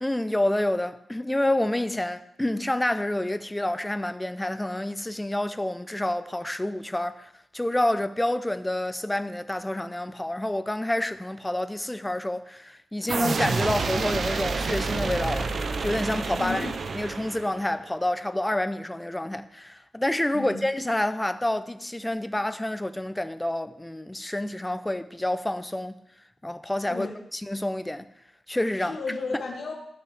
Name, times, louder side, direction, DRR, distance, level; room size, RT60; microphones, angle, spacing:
voice 1, 0.0-15.5 15.8-16.7 16.9-25.9 26.4-27.1 27.3-28.1 28.5-29.0 29.3-29.4, left 1 dB, 10° left, 0.5 m, -28 dB
sound 1, 13.1-17.8, right 4 dB, 55° right, 0.7 m, -29 dB
voice 2, 16.4-16.7 20.3-20.6 26.9-27.2 28.8-29.7, left 4 dB, 70° left, 2.3 m, -33 dB
15.0 x 5.9 x 3.4 m
wide cardioid pair, 115°, 0 cm